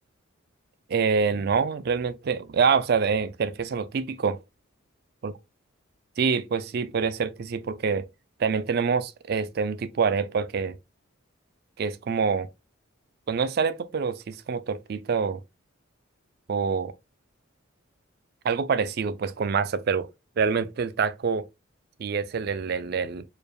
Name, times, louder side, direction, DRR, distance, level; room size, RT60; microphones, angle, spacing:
voice 1, 0.9-4.4 5.2-5.3 6.2-8.0 8.4-10.7 11.8-12.5 13.3-15.4 16.5-16.9 18.4-20.1 20.4-21.5 22.0-23.2, right 5 dB, 50° right, 0.3 m, -26 dB
4.6 x 3.3 x 2.3 m
head